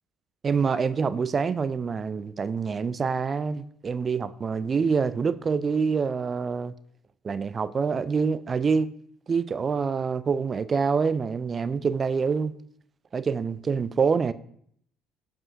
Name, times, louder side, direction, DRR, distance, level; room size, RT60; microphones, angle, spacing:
voice 1, 0.4-6.7 7.2-8.9 9.3-12.5 13.1-14.3, right 5 dB, 30° right, 0.3 m, -26 dB
7.2 x 4.8 x 2.7 m
figure-of-eight pair, 55°, 0 cm